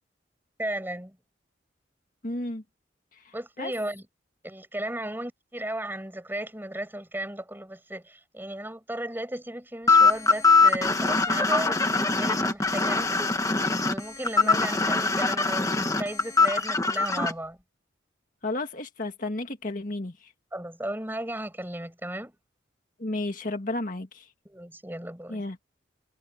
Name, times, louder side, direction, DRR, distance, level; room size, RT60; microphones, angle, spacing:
voice 1, 0.6-1.2 3.3-4.1 4.4-13.3 13.8-17.6 20.5-22.4 24.5-25.4, right 1 dB, 10° right, 5.5 m, -35 dB
voice 2, 2.2-2.6 3.2-3.7 14.4-14.6 18.4-20.3 23.0-24.3 25.3-25.6, left 2 dB, 45° left, 1.8 m, -33 dB
sound 1, 9.9-17.3, left 4 dB, 20° left, 1.7 m, -22 dB
head